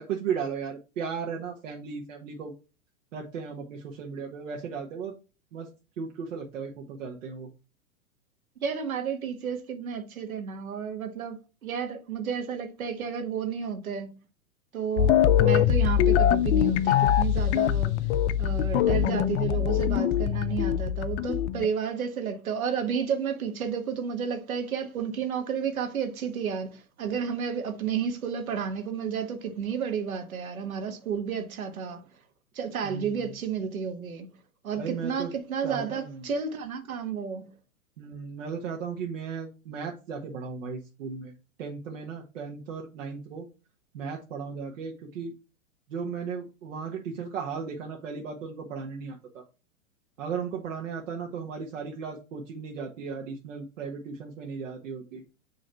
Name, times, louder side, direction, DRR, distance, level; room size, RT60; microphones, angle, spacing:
voice 1, 0.0-2.5 3.1-5.1 5.5-5.7 6.0-7.5 32.8-33.1 34.8-35.3 35.6-36.3 38.0-41.3 41.6-43.5 43.9-45.3 45.9-49.4 50.2-55.2, right 6 dB, 65° right, 1.3 m, -36 dB
voice 2, 8.6-14.1 14.7-18.1 18.4-32.1 32.5-34.3 34.6-37.5, right 7 dB, 80° right, 1.4 m, -32 dB
sound 1, 15.0-21.7, left 10 dB, 55° left, 0.5 m, -23 dB
6.8 x 3.2 x 4.4 m
hypercardioid pair, 110°, 42 cm